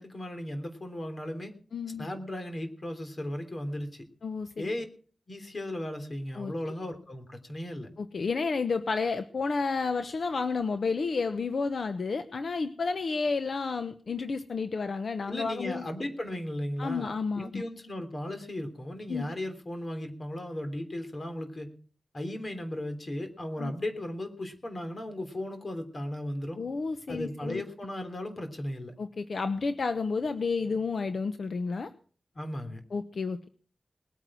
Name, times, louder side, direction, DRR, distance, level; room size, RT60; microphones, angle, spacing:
voice 1, 0.0-1.5 2.0-4.1 4.6-4.8 5.3-7.9 15.3-17.1 17.4-21.7 22.1-26.6 27.1-28.9 32.3-32.8, left 1 dB, 45° left, 7 dB, 3.3 m, -36 dB
voice 2, 1.7-2.1 4.2-4.7 6.4-6.5 8.0-15.8 16.8-17.6 19.1-19.3 23.6-23.7 26.6-27.6 29.0-31.9 32.9-33.5, left 4 dB, 75° left, 10 dB, 0.9 m, -31 dB
19.5 x 9.3 x 6.2 m, 0.44 s
wide cardioid pair, 75°, 0 cm